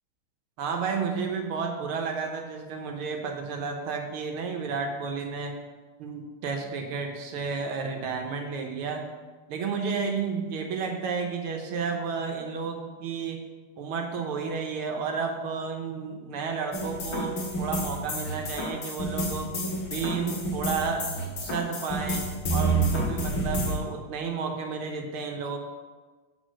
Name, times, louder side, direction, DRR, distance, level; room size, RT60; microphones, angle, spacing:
voice 1, 0.6-5.5 6.0-9.0 9.5-13.4 13.8-19.5 19.9-21.1 21.4-22.2 22.5-25.6, right 5 dB, 90° right, 3 dB, 1.8 m, -32 dB
sound 1, 16.7-23.8, right 2 dB, 50° left, 1.4 m, -29 dB
6.3 x 4.3 x 6.2 m, 1.4 s
omnidirectional pair, 2.3 m